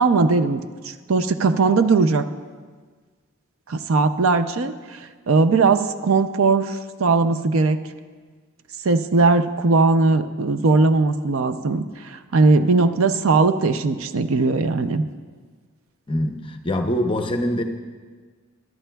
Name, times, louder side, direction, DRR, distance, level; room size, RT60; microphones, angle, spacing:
voice 1, 0.0-2.2 3.7-7.8 8.8-15.0, right 3 dB, 65° right, 10 dB, 0.5 m, -19 dB
voice 2, 16.1-17.6, left 1 dB, 25° left, 5 dB, 0.7 m, -24 dB
22.5 x 11.0 x 2.3 m, 1.5 s
head